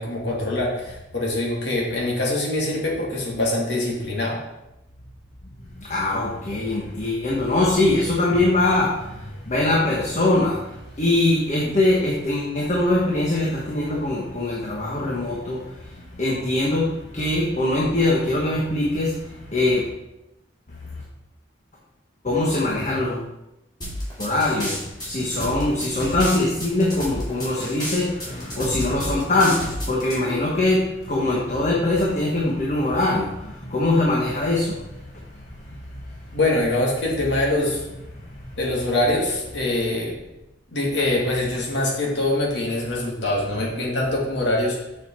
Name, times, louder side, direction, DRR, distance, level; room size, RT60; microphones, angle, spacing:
voice 1, 0.0-4.4 36.3-37.8 38.6-40.1 40.7-44.8, left 1 dB, 85° left, -3 dB, 2.2 m, -24 dB
voice 2, 5.8-15.7 16.1-19.2 19.5-19.9 22.2-23.2 24.2-34.8 35.7-35.8, left 2 dB, 45° left, -3 dB, 1.2 m, -22 dB
sound 1, 23.8-30.2, equal, 25° left, 3.1 m, -30 dB
6.9 x 6.6 x 4.5 m, 0.92 s
head